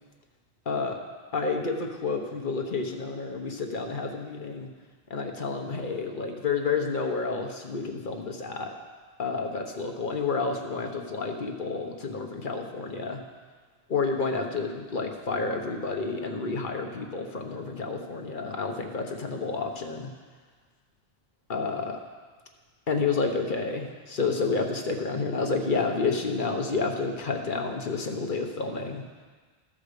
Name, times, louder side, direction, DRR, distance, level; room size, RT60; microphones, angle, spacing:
voice 1, 0.7-1.0 1.3-4.7 5.1-8.7 9.2-13.2 13.9-20.1 21.5-22.0 22.9-29.0, left 4 dB, 50° left, 3 dB, 1.1 m, -30 dB
13.5 x 5.0 x 6.6 m, 1.4 s
omnidirectional pair, 1.1 m